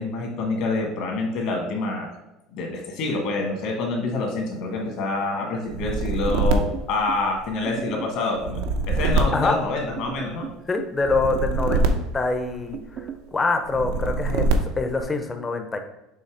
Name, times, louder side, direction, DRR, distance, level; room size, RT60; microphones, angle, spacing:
voice 1, 0.0-2.1 2.5-10.5, left 3 dB, 60° left, 1 dB, 1.8 m, -27 dB
sound 1, 5.7-7.7 8.3-10.3 11.0-12.9 13.7-15.0, right 3 dB, 85° right, 0.8 m, -25 dB
sound 2, 6.3-7.3 7.7-8.2 9.0-9.6 10.0-11.0 11.3-11.9 12.7-13.3, right 8 dB, 40° right, 0.5 m, -36 dB
voice 2, 10.7-12.8 13.3-14.5 14.8-15.8, left 3 dB, 20° left, 6 dB, 0.7 m, -25 dB
6.9 x 2.9 x 5.0 m, 0.91 s
cardioid pair, 145°, 0 cm